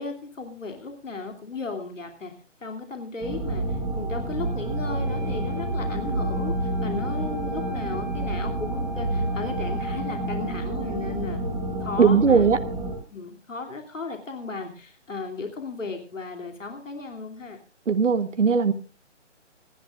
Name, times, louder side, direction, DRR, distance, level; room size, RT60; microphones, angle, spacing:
voice 1, 0.0-2.3 2.6-11.4 11.8-12.5 13.1-17.6, left 3 dB, 90° left, 4 dB, 3.0 m, -35 dB
sound 1, 3.2-13.0, right 1 dB, 5° right, 0.9 m, -29 dB
Wind instrument woodwind instrument, 4.4-10.4, left 1 dB, 35° right, 3.2 m, -39 dB
voice 2, 12.0-12.6 17.9-18.7, right 5 dB, 70° right, 10 dB, 1.4 m, -19 dB
25.5 x 11.0 x 2.5 m, 0.37 s
figure-of-eight pair, 160°, 37 cm